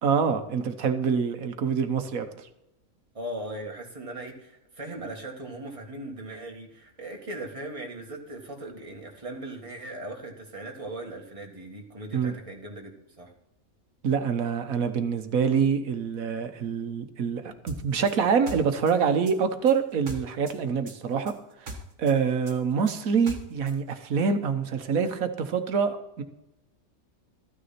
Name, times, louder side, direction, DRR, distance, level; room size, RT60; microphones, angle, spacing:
voice 1, 0.0-2.3 12.1-12.3 14.0-21.3 21.6-21.7 22.0-26.2, right 6 dB, 70° right, 8 dB, 1.5 m, -26 dB
voice 2, 3.1-13.3, right 1 dB, 25° right, 0 dB, 1.9 m, -39 dB
sound 1, 17.7-20.6 20.9-23.8, right 1 dB, 55° right, 1.9 m, -41 dB
14.0 x 9.6 x 4.3 m, 0.86 s
omnidirectional pair, 1.5 m